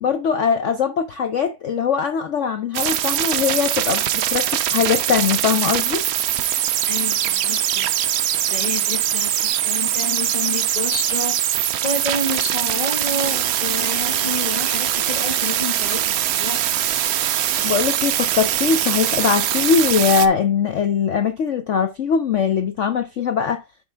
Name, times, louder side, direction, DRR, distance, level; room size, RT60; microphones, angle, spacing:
voice 1, 0.0-6.0 17.6-23.6, left 6 dB, 65° left, 0.7 m, -21 dB
sound 1, 2.7-20.3, right 11 dB, 65° right, 0.9 m, -22 dB
voice 2, 6.9-7.9 8.2-11.4 11.8-16.6, left 2 dB, 20° left, 2.1 m, -29 dB
7.7 x 5.6 x 3.4 m
omnidirectional pair, 2.0 m